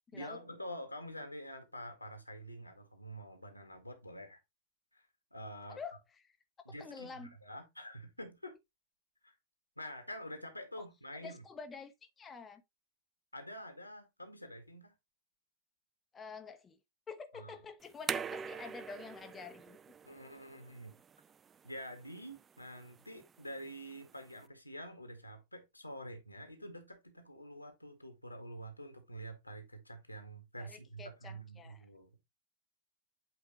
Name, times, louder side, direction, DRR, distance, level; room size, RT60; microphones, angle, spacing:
voice 1, 0.1-4.4 4.9-5.8 6.7-8.6 9.2-9.4 9.8-11.4 13.3-14.9 17.3-17.6 20.1-21.0 21.6-32.3, equal, 85° left, 1.8 m, -47 dB
voice 2, 6.8-7.3 11.2-12.6 16.1-16.8 17.1-19.8 30.6-31.8, left 5 dB, 20° left, 0.8 m, -48 dB
sound 1, 17.8-24.5, right 7 dB, 20° right, 0.3 m, -45 dB
8.1 x 4.4 x 3.1 m
figure-of-eight pair, 90°, 0 cm